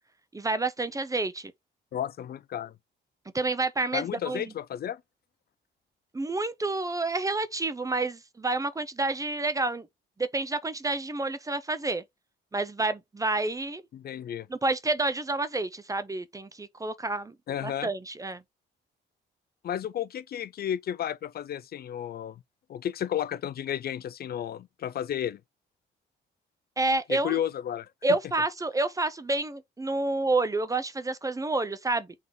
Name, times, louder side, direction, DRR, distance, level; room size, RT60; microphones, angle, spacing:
voice 1, 0.3-1.5 3.3-4.5 6.1-9.9 10.2-12.0 12.5-13.8 14.5-17.3 17.6-18.4 26.8-27.4 28.0-32.1, right 2 dB, 15° right, 0.6 m, -29 dB
voice 2, 1.9-2.7 3.9-5.0 13.9-14.5 17.5-17.9 19.6-22.4 22.7-25.4 27.1-27.9, left 10 dB, 50° left, 0.4 m, -32 dB
3.9 x 3.5 x 3.7 m
cardioid pair, 90°, 20 cm